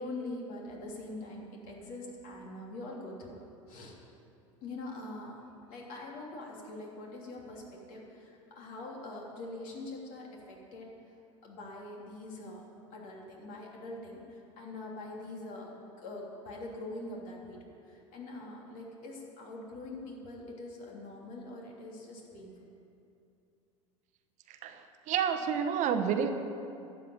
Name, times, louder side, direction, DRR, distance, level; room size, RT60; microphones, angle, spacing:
voice 1, 0.0-3.4 3.7-3.9 4.6-5.4 5.7-10.9 11.4-12.6 12.9-22.5, left 2 dB, 55° left, -2 dB, 3.2 m, -43 dB
voice 2, 25.1-26.3, right 7 dB, 50° right, 7 dB, 1.0 m, -29 dB
12.0 x 7.6 x 8.6 m, 2.6 s
hypercardioid pair, 80°, 17 cm